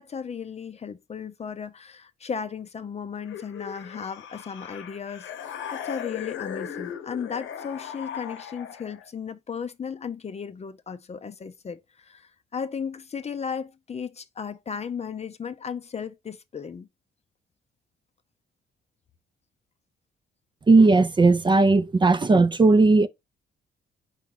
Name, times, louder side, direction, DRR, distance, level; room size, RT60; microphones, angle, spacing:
voice 1, 0.0-16.9, left 6 dB, 35° left, 0.5 m, -35 dB
sound 1, 3.2-9.1, left 8 dB, 75° left, 0.9 m, -37 dB
voice 2, 20.7-23.1, right 3 dB, 25° right, 0.5 m, -17 dB
4.8 x 2.9 x 3.6 m
cardioid pair, 90°, 20 cm